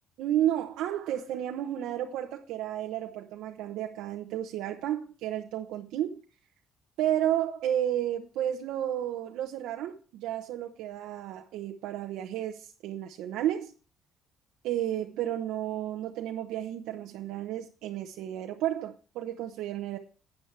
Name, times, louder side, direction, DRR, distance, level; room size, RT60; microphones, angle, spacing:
voice 1, 0.2-6.2 7.0-13.7 14.6-20.0, right 11 dB, 80° right, 3 dB, 0.8 m, -32 dB
12.5 x 8.4 x 3.3 m, 0.37 s
cardioid pair, 115°, 0 cm